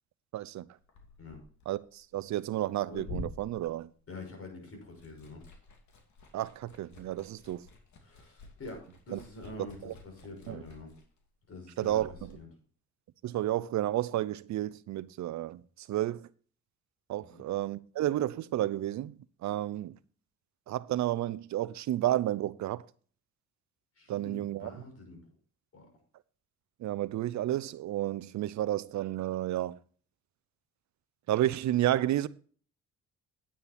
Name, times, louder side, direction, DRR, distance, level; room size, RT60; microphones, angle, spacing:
voice 1, 0.3-0.7 1.7-3.9 6.3-7.7 9.1-9.2 9.8-9.9 10.5-10.6 11.8-12.4 13.2-16.3 17.1-20.0 20.7-22.8 24.1-24.7 26.8-29.8 31.3-32.3, right 13 dB, 65° right, 0.6 m, -31 dB
Liquid, 0.8-4.5 4.8-12.4, left 2 dB, 65° left, 2.7 m, -48 dB
voice 2, 4.1-5.5 8.0-10.9 11.5-12.5 17.2-17.4 24.0-25.2 25.7-25.9, left 2 dB, 50° left, 5.6 m, -46 dB
9.6 x 8.8 x 4.3 m
cardioid pair, 90°, 30 cm